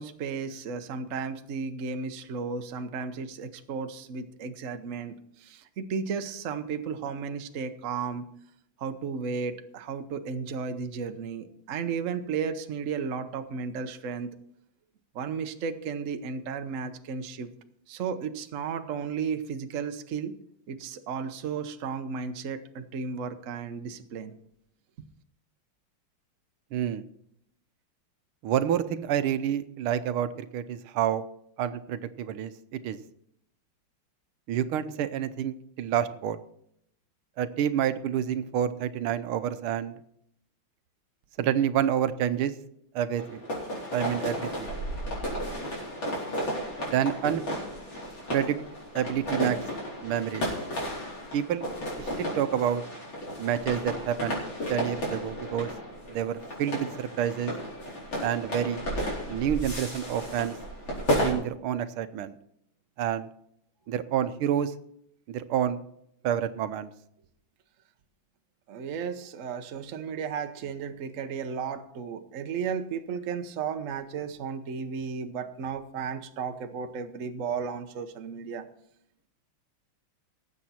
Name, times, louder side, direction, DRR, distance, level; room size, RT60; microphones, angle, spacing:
voice 1, 0.0-8.2 8.8-14.3 15.1-17.5 17.9-20.3 20.7-24.3 41.4-41.5 43.7-43.8 68.7-78.7, right 6 dB, 50° right, 7 dB, 1.0 m, -34 dB
voice 2, 26.7-27.0 28.4-31.2 31.6-33.0 34.5-36.4 37.4-40.0 41.4-42.5 42.9-43.4 43.9-44.7 46.9-47.4 48.3-48.6 48.9-49.6 50.0-50.5 51.3-51.6 52.0-52.8 53.4-54.4 54.7-55.7 56.1-57.5 58.2-58.8 59.3-60.6 61.2-62.4 63.0-63.3 63.9-64.7 65.3-65.8 66.2-66.9, right 10 dB, 80° right, 12 dB, 1.6 m, -28 dB
sound 1, 43.1-61.3, equal, 65° left, 5.1 m, -33 dB
18.5 x 8.1 x 4.3 m, 0.73 s
omnidirectional pair, 2.3 m